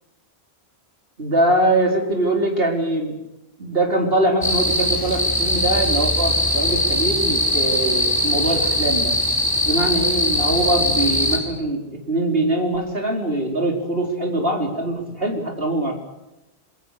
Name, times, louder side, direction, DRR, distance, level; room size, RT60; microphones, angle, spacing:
voice 1, 1.2-3.2 3.6-9.1 9.7-15.9, right 1 dB, 60° right, 2 dB, 5.0 m, -22 dB
sound 1, 4.4-11.4, left 1 dB, 20° left, 4.6 m, -21 dB
26.0 x 23.0 x 6.8 m, 0.94 s
omnidirectional pair, 1.1 m